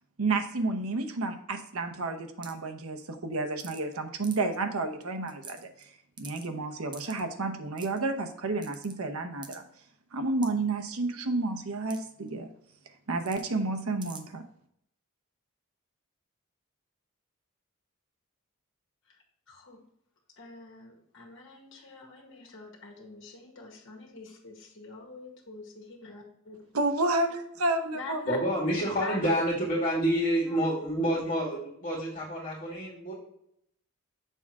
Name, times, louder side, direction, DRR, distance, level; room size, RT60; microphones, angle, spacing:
voice 1, 0.2-9.6 10.1-12.5 13.1-14.4 26.7-28.2, right 2 dB, 85° right, 6 dB, 0.9 m, -31 dB
sound 1, 2.4-2.7 3.6-3.9 4.2-4.6 5.0-5.1 5.3-5.8 6.2-6.5 6.9-7.2 7.8-8.0 8.6-8.9 9.4-9.6 10.4-10.5 11.9-12.0 12.3-12.4 13.2-13.4 14.0-14.2, right 5 dB, 20° right, 0.6 m, -46 dB
voice 2, 19.1-19.8 20.4-26.6 27.9-28.4 29.0-29.3, left 4 dB, 60° left, 0 dB, 1.7 m, -45 dB
voice 3, 28.3-33.1, equal, 40° left, -7 dB, 2.2 m, -28 dB
6.9 x 3.6 x 4.7 m, 0.73 s
head